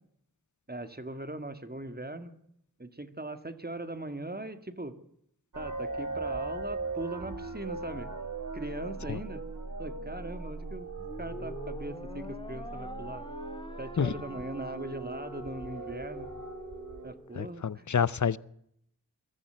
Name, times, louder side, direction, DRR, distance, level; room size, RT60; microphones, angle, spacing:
voice 1, 0.7-2.3 2.8-4.9 5.6-8.1 8.5-9.4 9.8-10.9 11.2-13.2 13.8-16.3 17.0-17.8, right 2 dB, 25° right, 2.0 m, -40 dB
sound 1, 5.5-17.1, right 3 dB, 60° right, 3.0 m, -39 dB
sound 2, 11.0-17.5, left 1 dB, 15° left, 2.0 m, -45 dB
voice 2, 17.4-18.4, left 7 dB, 55° left, 0.7 m, -28 dB
22.0 x 14.5 x 9.2 m
wide cardioid pair, 55°, 35 cm